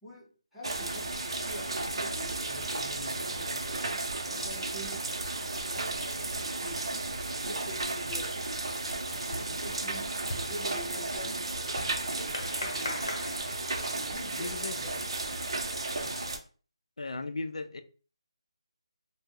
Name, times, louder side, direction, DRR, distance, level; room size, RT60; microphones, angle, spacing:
voice 1, 0.0-3.9 4.2-7.1 7.4-8.4 9.1-10.2 10.4-11.5 12.0-13.5 13.9-15.1 15.9-16.2, equal, ahead, 0.6 m, -46 dB
sound 1, 0.6-16.4, right 2 dB, 55° right, 0.5 m, -34 dB
sound 2, 9.3-14.2, left 1 dB, 45° left, 0.8 m, -41 dB
voice 2, 14.4-14.8 17.0-17.8, left 3 dB, 80° left, 0.4 m, -36 dB
2.9 x 2.1 x 3.6 m
figure-of-eight pair, 170°, 3 cm